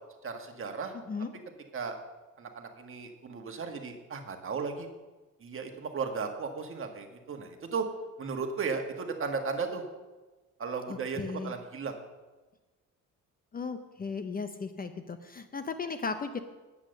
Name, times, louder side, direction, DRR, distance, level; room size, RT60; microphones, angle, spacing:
voice 1, 0.2-0.9 1.7-1.9 2.4-4.9 5.4-7.9 8.2-9.8 10.6-11.9, right 5 dB, 40° right, 4 dB, 1.6 m, -35 dB
voice 2, 11.2-11.5 13.5-16.4, left 4 dB, 25° left, 9 dB, 0.7 m, -36 dB
10.0 x 8.5 x 6.5 m, 1.2 s
cardioid pair, 125°, 33 cm